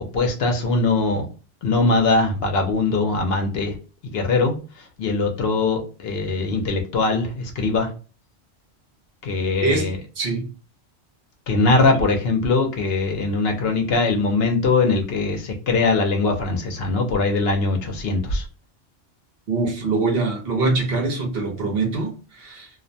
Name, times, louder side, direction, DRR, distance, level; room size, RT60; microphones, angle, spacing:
voice 1, 0.1-1.3 1.6-3.7 4.1-7.9 9.2-10.0 11.5-18.4, left 3 dB, 65° left, 3 dB, 0.8 m, -21 dB
voice 2, 10.2-10.5 11.7-11.8 19.5-22.7, right 3 dB, 60° right, 1 dB, 0.9 m, -23 dB
2.5 x 2.1 x 2.6 m, 0.35 s
omnidirectional pair, 1.1 m